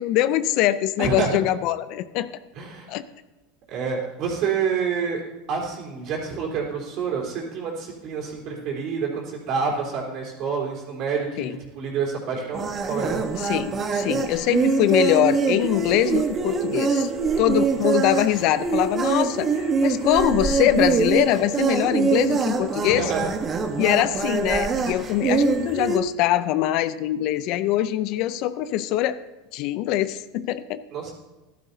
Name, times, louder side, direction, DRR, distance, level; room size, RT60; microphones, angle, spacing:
voice 1, 0.0-2.3 2.9-3.0 11.4-11.5 13.5-17.1 17.4-23.1 23.8-29.2 29.5-30.8, left 13 dB, 60° left, 15 dB, 0.5 m, -23 dB
voice 2, 1.0-1.4 2.6-2.9 3.7-5.2 5.5-13.2 22.8-23.3 30.9-31.1, right 5 dB, 50° right, -1 dB, 3.6 m, -28 dB
sound 1, 12.5-26.0, right 4 dB, 30° right, 1.2 m, -24 dB
14.0 x 12.0 x 2.8 m, 1.1 s
hypercardioid pair, 100°, 0 cm